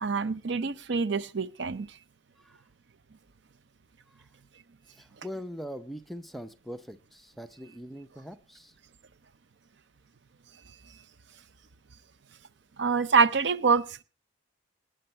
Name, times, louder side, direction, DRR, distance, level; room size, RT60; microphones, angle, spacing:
voice 1, 0.0-1.9 12.8-14.0, right 5 dB, 60° right, 0.6 m, -25 dB
voice 2, 4.9-8.8, equal, ahead, 0.6 m, -42 dB
19.0 x 8.0 x 4.3 m
head